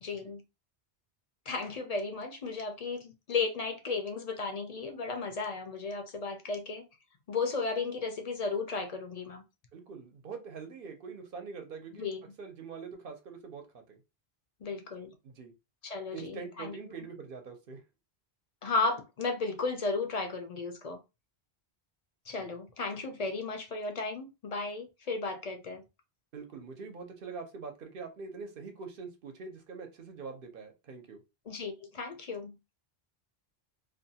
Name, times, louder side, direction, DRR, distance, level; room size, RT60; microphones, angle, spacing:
voice 1, 0.0-0.4 1.5-6.9 7.3-9.4 12.0-12.2 14.6-15.2 15.8-17.1 18.6-21.0 22.3-25.8 31.5-32.6, left 4 dB, 50° left, 0.5 m, -34 dB
voice 2, 9.7-12.1 12.4-14.0 15.2-15.5 16.1-17.8 22.4-22.5 26.3-31.2, right 5 dB, 60° right, 0.9 m, -44 dB
2.5 x 2.2 x 2.7 m
omnidirectional pair, 1.1 m